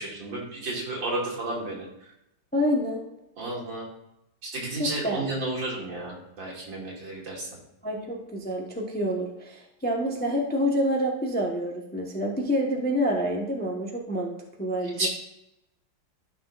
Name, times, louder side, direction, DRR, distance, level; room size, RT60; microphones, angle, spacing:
voice 1, 0.0-1.9 3.4-3.9 4.4-7.5 15.0-15.1, right 2 dB, 75° right, -3 dB, 3.1 m, -32 dB
voice 2, 2.5-3.0 4.8-5.3 7.8-15.1, equal, 5° left, 0 dB, 0.7 m, -27 dB
13.5 x 6.0 x 2.5 m, 0.85 s
omnidirectional pair, 2.1 m